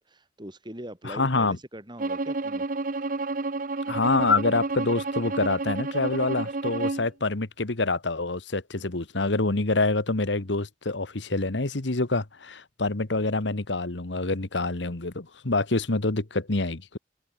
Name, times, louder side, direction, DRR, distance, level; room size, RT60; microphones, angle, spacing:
voice 1, 0.0-2.7, right 1 dB, 25° right, 6.1 m, -42 dB
voice 2, 1.0-1.6 3.9-17.0, left 3 dB, 75° left, 1.6 m, -26 dB
Bowed string instrument, 2.0-7.1, right 3 dB, 50° right, 1.0 m, -30 dB
head